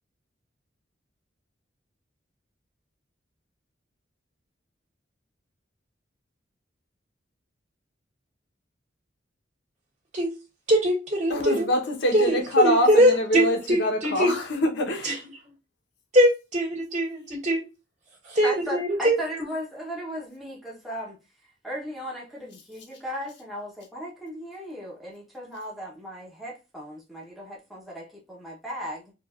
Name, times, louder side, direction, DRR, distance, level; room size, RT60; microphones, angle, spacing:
voice 1, 10.7-11.7 12.1-14.3 15.0-15.1 16.1-17.6 18.2-19.2, equal, 40° right, 2.0 m, -22 dB
voice 2, 11.3-15.2, equal, 70° left, 1.1 m, -25 dB
voice 3, 18.4-21.2 21.6-29.1, equal, ahead, 1.0 m, -36 dB
4.5 x 2.6 x 2.5 m
head